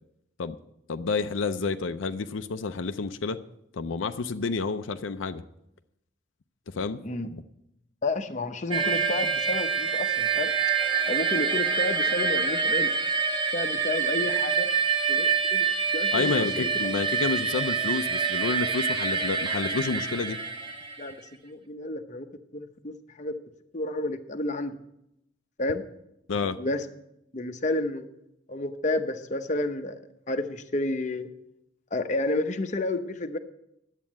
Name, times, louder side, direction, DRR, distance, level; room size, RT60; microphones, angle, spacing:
voice 1, 0.9-3.4 3.7-5.4 6.7-7.0 7.3-7.4 16.1-20.4 26.3-26.6, left 4 dB, 80° left, 9 dB, 0.5 m, -29 dB
voice 2, 8.0-10.5 11.1-12.9 13.5-14.7 15.1-15.7 15.9-16.7 21.0-21.1 21.4-22.3 22.5-23.3 23.7-24.8 25.6-25.8 26.6-26.8 27.3-28.1 28.5-30.0 30.3-31.3 31.9-33.4, left 2 dB, 35° left, 7 dB, 0.7 m, -30 dB
sound 1, 8.7-21.1, right 5 dB, 25° right, 1.0 m, -26 dB
10.5 x 8.2 x 7.4 m, 0.81 s
head